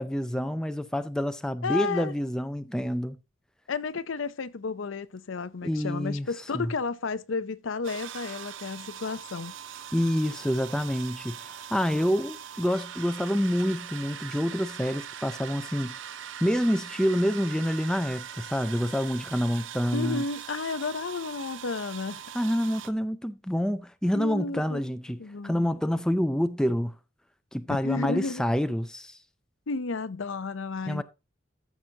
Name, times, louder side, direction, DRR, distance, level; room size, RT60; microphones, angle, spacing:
voice 1, 0.0-3.2 5.6-6.3 6.5-6.7 9.9-16.0 16.4-20.2 22.3-26.9 27.5-29.2 30.8-31.0, equal, 5° left, 0.4 m, -27 dB
voice 2, 1.6-2.1 3.7-9.5 19.9-22.2 24.1-24.8 25.2-25.6 27.7-28.4 29.7-31.0, left 4 dB, 75° left, 0.6 m, -32 dB
sound 1, 7.8-22.9, right 9 dB, 70° right, 0.6 m, -41 dB
13.5 x 6.1 x 2.8 m
head